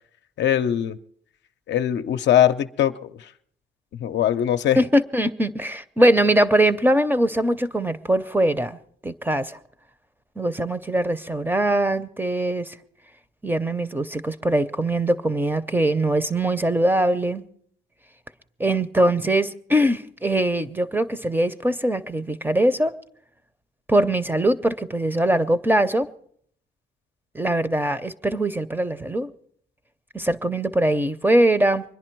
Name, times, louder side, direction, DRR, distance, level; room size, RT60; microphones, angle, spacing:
voice 1, 0.4-1.0 1.7-3.3 4.0-4.8, left 10 dB, 65° left, 0.6 m, -21 dB
voice 2, 4.8-8.8 9.0-9.6 10.4-12.8 13.4-17.4 18.6-22.9 23.9-26.1 27.3-29.3 30.1-31.8, right 1 dB, 10° right, 0.6 m, -22 dB
24.0 x 10.5 x 4.5 m
cardioid pair, 90°, 20 cm